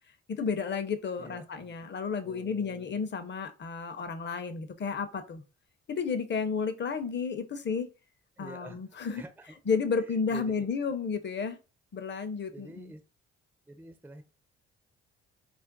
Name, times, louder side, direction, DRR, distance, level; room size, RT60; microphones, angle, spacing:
voice 1, 0.3-5.4 5.9-7.9 8.4-9.2 9.7-11.6 11.9-12.9, left 5 dB, 35° left, 0.6 m, -32 dB
voice 2, 1.2-1.8 2.2-3.1 8.4-9.6 10.0-10.7 12.5-13.0 13.7-14.2, right 2 dB, 5° right, 0.4 m, -48 dB
2.4 x 2.1 x 3.8 m
hypercardioid pair, 50°, 31 cm